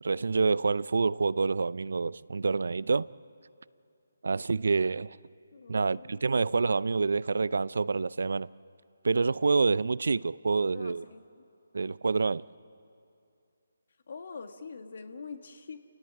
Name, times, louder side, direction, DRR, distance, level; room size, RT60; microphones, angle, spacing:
voice 1, 0.0-3.1 4.2-5.2 5.7-8.5 9.0-11.0 11.7-12.4, right 4 dB, 65° right, 0.5 m, -27 dB
voice 2, 5.5-6.6 10.7-11.2 14.1-15.8, left 5 dB, 55° left, 1.7 m, -45 dB
30.0 x 17.0 x 8.9 m
figure-of-eight pair, 155°, 0 cm